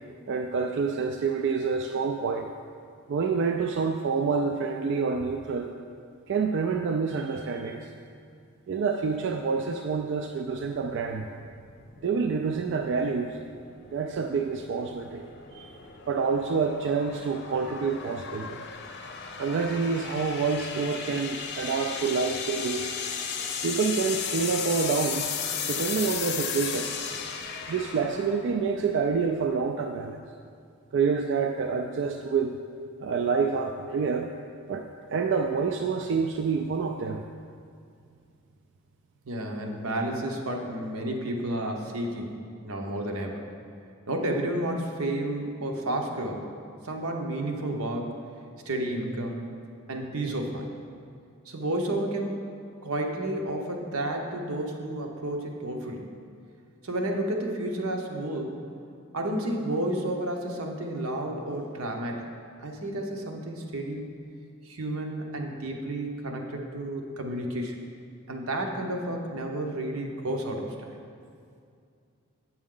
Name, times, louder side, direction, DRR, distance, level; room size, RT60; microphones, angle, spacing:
voice 1, 0.3-2.5 3.1-5.7 6.3-7.9 8.7-11.3 12.0-13.4 13.9-15.3 15.5-15.8 16.1-18.6 19.4-22.9 23.6-25.3 25.6-26.9 27.7-30.2 30.9-32.6 33.0-34.3 34.7-37.2, right 5 dB, 55° right, 4 dB, 0.3 m, -27 dB
sound 1, 10.6-29.6, left 6 dB, 50° left, 0.6 m, -36 dB
voice 2, 39.3-42.4 42.6-43.5 44.1-46.5 46.8-48.1 48.7-49.4 49.9-50.7 51.5-52.4 52.8-56.1 56.8-58.6 59.1-62.2 62.6-64.1 64.6-67.7 68.3-70.7, right 1 dB, 85° right, 2 dB, 0.9 m, -31 dB
8.5 x 6.1 x 3.8 m, 2.4 s
head